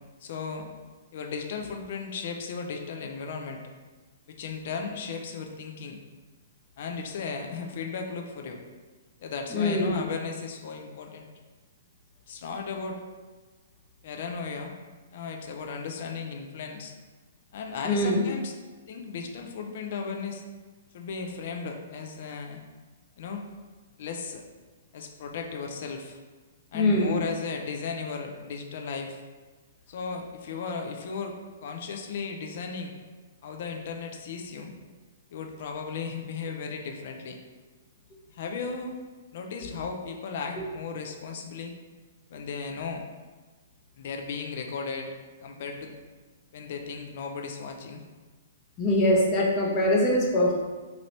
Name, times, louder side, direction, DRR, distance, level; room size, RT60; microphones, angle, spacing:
voice 1, 0.2-0.7 1.1-3.6 4.3-6.0 6.8-8.6 9.2-11.3 12.3-13.0 14.0-14.7 15.1-16.9 17.5-18.6 18.9-20.4 20.9-22.6 23.2-23.4 24.0-24.4 24.9-26.2 26.7-29.2 29.9-32.9 33.4-34.7 35.3-37.4 38.3-39.0 39.3-41.7 42.3-43.0 44.0-45.1 45.4-45.9 46.5-48.0, left 5 dB, 50° left, 3 dB, 0.4 m, -35 dB
voice 2, 9.5-9.9 17.8-18.2 26.7-27.2 40.6-40.7 48.8-50.5, left 1 dB, 30° left, -3 dB, 0.8 m, -23 dB
3.0 x 2.5 x 3.1 m, 1.3 s
figure-of-eight pair, 115°, 0 cm